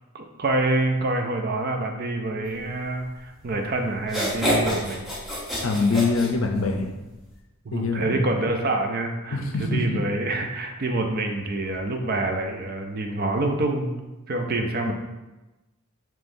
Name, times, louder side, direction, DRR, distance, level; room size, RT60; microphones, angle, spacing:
voice 1, 0.1-5.1 7.6-14.0 14.3-14.9, right 2 dB, 45° right, 3 dB, 0.4 m, -26 dB
sound 1, 3.5-3.6 4.0-6.9, equal, ahead, 0.8 m, -27 dB
voice 2, 5.6-6.9 7.7-8.4 9.3-10.0 14.8-14.9, left 3 dB, 70° left, 4 dB, 0.5 m, -24 dB
5.3 x 3.1 x 2.6 m, 1.1 s
head